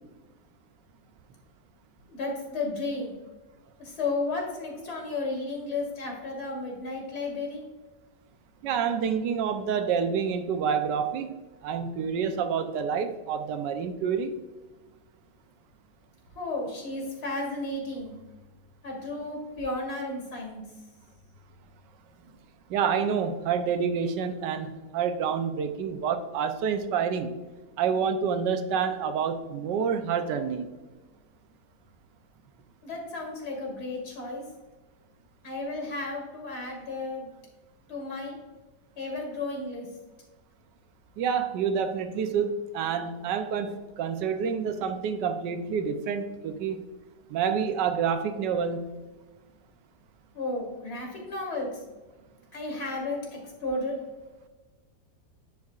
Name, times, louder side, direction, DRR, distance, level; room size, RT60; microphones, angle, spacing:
voice 1, 2.1-3.2 3.8-7.6 16.3-18.2 18.8-20.6 32.8-34.4 35.4-37.3 37.9-38.4 39.0-39.9 47.3-47.4 50.3-51.8 52.5-54.1, left 2 dB, 65° left, 0 dB, 2.6 m, -33 dB
voice 2, 8.6-11.3 11.6-14.4 22.7-27.3 27.8-30.7 41.2-46.8 47.3-49.0, right 6 dB, 90° right, 8 dB, 1.3 m, -28 dB
11.0 x 4.7 x 2.4 m, 1.2 s
omnidirectional pair, 1.8 m